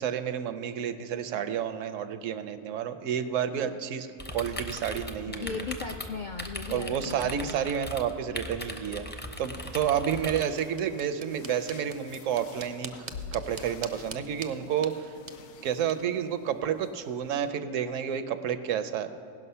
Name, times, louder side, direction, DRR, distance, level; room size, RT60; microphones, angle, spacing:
voice 1, 0.0-5.6 6.7-12.9 13.3-15.1 15.6-19.1, right 8 dB, 75° right, 10 dB, 1.0 m, -30 dB
sound 1, 4.2-10.4, left 1 dB, 10° left, 0.5 m, -39 dB
voice 2, 5.3-7.6 9.9-10.1 14.6-14.9, left 5 dB, 60° left, 3 dB, 0.5 m, -38 dB
sound 2, 9.3-17.5, left 6 dB, 80° left, 1.1 m, -49 dB
sound 3, 10.2-17.2, right 5 dB, 50° right, 0.5 m, -47 dB
18.0 x 6.0 x 5.5 m, 2.6 s
omnidirectional pair, 1.3 m